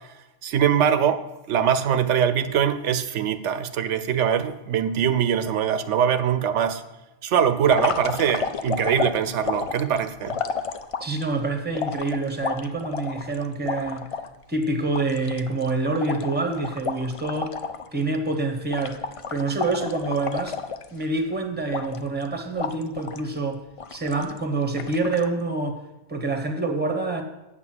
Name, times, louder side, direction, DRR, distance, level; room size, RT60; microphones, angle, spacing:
voice 1, 0.4-1.2 1.5-6.8 7.2-10.4, right 8 dB, 85° right, 1.0 m, -22 dB
sound 1, 7.6-11.2 11.7-14.3 14.6-14.7 14.9-17.9 18.1-18.4 18.7-21.2 21.7-22.2 22.6-23.3 23.8-24.4 24.8-25.3, left 5 dB, 55° left, 0.3 m, -31 dB
voice 2, 11.0-14.1 14.5-17.5 17.9-19.0 19.3-20.6 20.9-23.6 23.9-25.8 26.1-27.2, right 3 dB, 10° right, 1.0 m, -26 dB
8.2 x 6.0 x 7.7 m
omnidirectional pair, 1.2 m